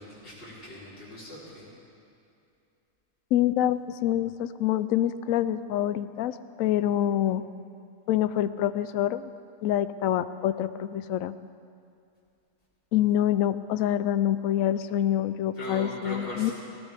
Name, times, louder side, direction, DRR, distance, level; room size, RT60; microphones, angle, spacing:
voice 1, 0.0-1.7 15.5-16.5, left 1 dB, 50° left, -12 dB, 4.2 m, -39 dB
voice 2, 3.3-7.4 8.1-9.3 9.6-11.4 12.9-16.5, left 11 dB, 70° left, 13 dB, 0.9 m, -26 dB
19.0 x 18.5 x 3.5 m, 2.6 s
omnidirectional pair, 1.6 m